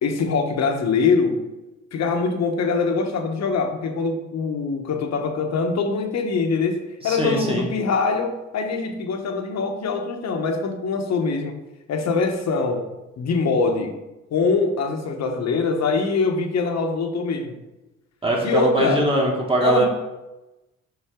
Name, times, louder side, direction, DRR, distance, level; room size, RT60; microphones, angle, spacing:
voice 1, 0.0-1.5 1.9-11.6 11.9-12.9 13.2-14.0 14.3-17.6 18.4-19.0 19.6-19.9, left 4 dB, 60° left, 4 dB, 1.1 m, -23 dB
voice 2, 7.0-7.7 18.2-19.9, right 1 dB, 20° right, -1 dB, 1.9 m, -21 dB
5.7 x 5.6 x 3.7 m, 1.0 s
cardioid pair, 90°, 30 cm